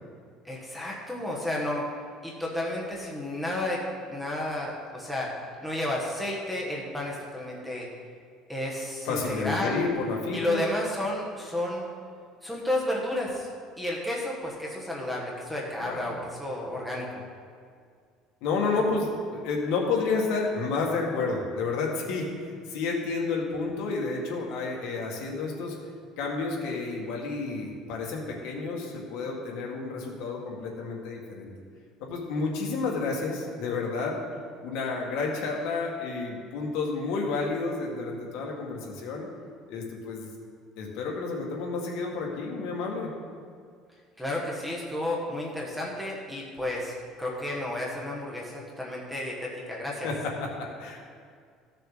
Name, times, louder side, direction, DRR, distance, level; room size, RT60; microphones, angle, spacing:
voice 1, 0.4-1.8 2.2-3.8 4.1-5.3 5.6-7.9 8.5-9.9 10.3-11.9 12.4-13.5 13.8-17.1 44.2-50.1, left 1 dB, ahead, -4 dB, 1.1 m, -32 dB
voice 2, 9.1-10.6 15.8-16.1 18.4-25.8 26.2-31.5 32.0-34.2 34.6-39.3 39.7-40.3 40.8-43.1 50.0-51.0, left 4 dB, 65° left, -1 dB, 1.8 m, -30 dB
14.5 x 6.8 x 3.9 m, 2.1 s
cardioid pair, 180°, 0 cm